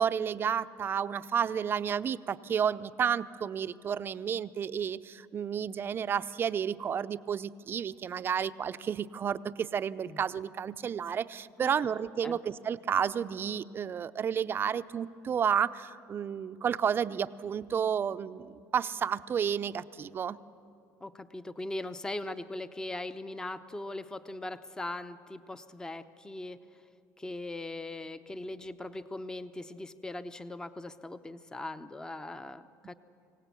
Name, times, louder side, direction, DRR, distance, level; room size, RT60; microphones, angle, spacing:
voice 1, 0.0-20.4, right 8 dB, 35° right, 13 dB, 0.5 m, -31 dB
voice 2, 21.0-26.6 27.2-32.9, left 2 dB, 10° left, 11 dB, 0.7 m, -40 dB
25.0 x 17.0 x 8.3 m, 2.4 s
cardioid pair, 120°, 7 cm